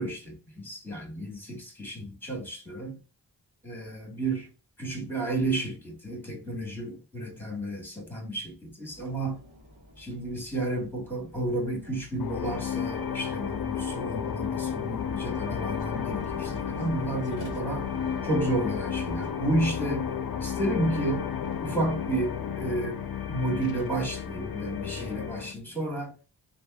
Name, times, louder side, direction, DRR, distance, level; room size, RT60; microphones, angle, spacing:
voice 1, 0.0-3.0 3.6-4.5 4.8-9.4 10.0-17.9 18.2-21.3 21.6-23.0 23.3-26.1, right 1 dB, 5° left, 1.4 m, -31 dB
sound 1, 8.9-19.3, left 1 dB, 45° right, 1.2 m, -46 dB
sound 2, 12.2-25.5, left 7 dB, 55° left, 0.5 m, -33 dB
3.4 x 2.1 x 2.2 m
cardioid pair, 40°, 44 cm